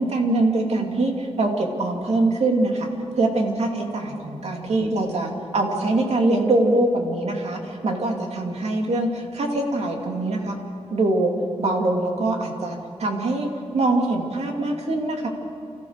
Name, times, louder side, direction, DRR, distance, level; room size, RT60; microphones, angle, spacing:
voice 1, 0.0-2.9 3.2-10.6 10.9-11.3 11.6-15.3, right 2 dB, 70° right, 1 dB, 2.7 m, -23 dB
29.0 x 14.0 x 6.6 m, 2.5 s
wide cardioid pair, 120°, 11 cm